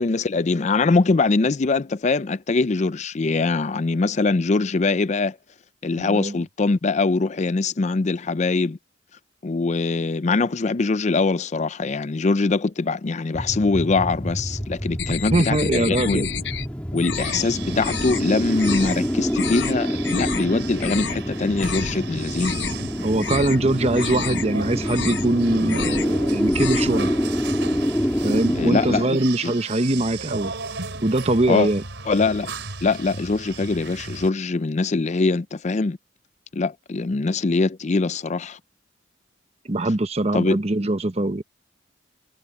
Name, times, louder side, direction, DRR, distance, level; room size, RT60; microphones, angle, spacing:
voice 1, 0.0-5.4 5.8-8.8 9.4-16.3 16.9-22.6 28.6-29.5 31.5-31.7 32.1-32.5 32.8-36.0 36.5-38.6 40.3-40.6, left 3 dB, 40° left, 0.5 m, -23 dB
voice 2, 6.0-6.4 15.1-16.3 23.0-27.1 28.2-30.5 30.9-31.8 39.7-41.4, right 2 dB, 35° right, 1.0 m, -22 dB
sound 1, 13.3-29.0, equal, 5° left, 3.0 m, -26 dB
sound 2, 15.0-16.7 17.0-17.5 17.8-18.2 18.6-19.0 19.3-19.7 20.0-20.4 20.7-21.2 21.6-21.9 22.3-22.9 23.2-23.6 23.9-24.4 24.8-25.3 25.6-26.1 26.4-27.0, left 7 dB, 75° left, 0.9 m, -30 dB
sound 3, 17.1-34.3, right 4 dB, 85° right, 3.5 m, -36 dB
head